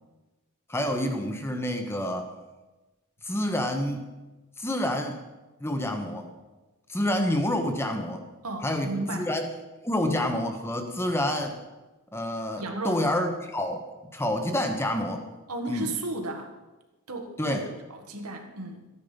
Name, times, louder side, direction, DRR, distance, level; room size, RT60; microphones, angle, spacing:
voice 1, 0.7-2.3 3.2-4.0 4.6-5.2 5.6-6.3 6.9-8.2 8.6-9.5 9.8-11.6 12.1-13.8 14.1-15.3 15.7-15.9 17.4-17.7, left 1 dB, 10° left, 5 dB, 1.1 m, -28 dB
voice 2, 8.4-9.3 12.6-13.0 15.5-16.5 17.1-17.6 17.9-18.9, right 2 dB, 90° right, 3 dB, 1.8 m, -34 dB
14.0 x 9.6 x 5.2 m, 1.1 s
head